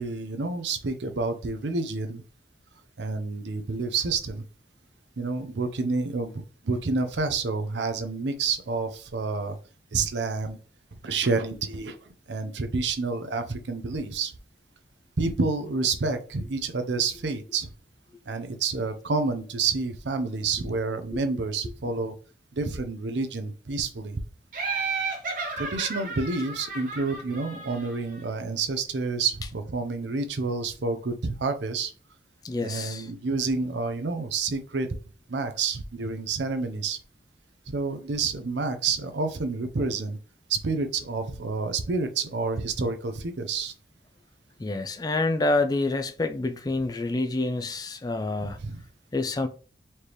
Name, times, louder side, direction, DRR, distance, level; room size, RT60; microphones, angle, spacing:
voice 1, 0.0-2.2 3.0-4.4 5.2-9.6 9.9-10.6 11.0-12.0 12.3-14.3 15.2-17.7 18.3-22.1 22.5-24.2 25.6-31.9 32.6-34.9 35.3-37.0 37.7-40.2 40.5-43.7 48.4-48.8, right 4 dB, 80° right, 0.6 m, -29 dB
Laughter, 24.5-28.2, right 4 dB, 50° right, 1.2 m, -33 dB
voice 2, 32.4-33.1 44.6-48.6 49.1-49.5, left 2 dB, 20° left, 0.3 m, -27 dB
4.3 x 3.3 x 3.0 m
head